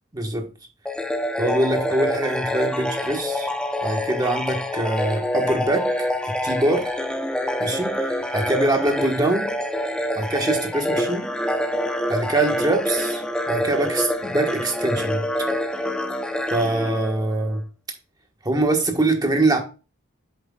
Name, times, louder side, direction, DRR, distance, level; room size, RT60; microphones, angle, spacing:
voice 1, 0.1-0.5 1.4-3.5 3.8-6.9 7.6-9.5 10.1-11.3 12.1-15.2 16.5-17.6 18.4-19.6, right 2 dB, 20° right, 1.3 m, -23 dB
sound 1, 0.9-17.6, left 1 dB, 5° left, 0.7 m, -26 dB
8.0 x 7.4 x 2.3 m
head